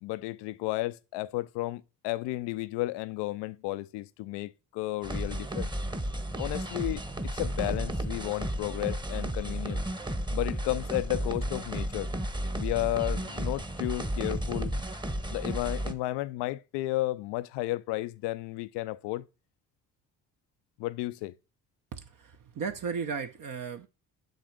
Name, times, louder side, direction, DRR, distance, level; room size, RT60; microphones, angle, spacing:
voice 1, 0.0-5.7 6.4-9.8 10.3-12.1 12.6-14.8 15.3-19.2 20.8-21.4, left 18 dB, 75° left, 0.6 m, -33 dB
sound 1, 5.0-15.9, right 1 dB, 10° right, 1.1 m, -33 dB
voice 2, 21.9-23.9, right 6 dB, 50° right, 1.0 m, -35 dB
8.0 x 3.3 x 6.4 m
hypercardioid pair, 55°, 41 cm